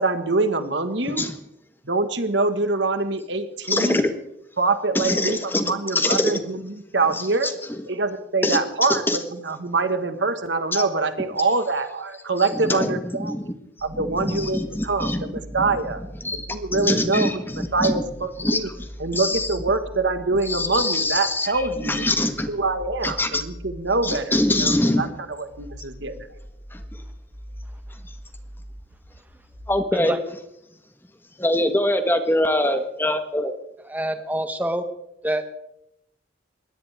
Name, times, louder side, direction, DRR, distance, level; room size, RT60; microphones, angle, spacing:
voice 1, 0.0-1.3 1.8-4.0 4.6-7.5 7.9-13.3 13.8-16.0 16.3-18.7 19.0-22.1 22.5-26.3, right 3 dB, 85° right, 9 dB, 1.7 m, -25 dB
voice 2, 1.0-1.4 3.6-4.1 4.9-6.4 7.1-7.8 8.4-9.2 10.7-10.8 12.4-13.5 13.9-15.8 16.2-18.0 18.4-19.6 20.4-22.5 23.0-23.4 24.0-25.0 26.7-27.0 28.0-28.1 29.7-30.2 31.4-33.5, left 1 dB, 10° left, 8 dB, 1.3 m, -24 dB
sound 1, 13.8-29.8, equal, 65° right, 4.7 m, -41 dB
voice 3, 33.9-34.8 35.2-35.5, right 1 dB, 10° right, 7 dB, 1.5 m, -26 dB
21.5 x 17.0 x 3.6 m, 0.81 s
head